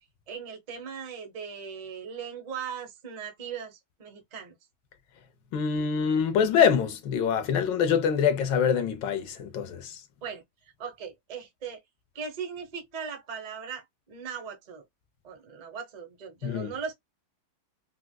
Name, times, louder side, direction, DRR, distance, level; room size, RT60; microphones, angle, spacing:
voice 1, 0.3-4.5 10.2-10.4 10.8-11.8 12.1-14.8 15.2-16.9, right 6 dB, 70° right, 0.4 m, -39 dB
voice 2, 5.5-10.0 16.4-16.7, left 7 dB, 75° left, 1.2 m, -25 dB
4.5 x 2.1 x 2.2 m
omnidirectional pair, 2.2 m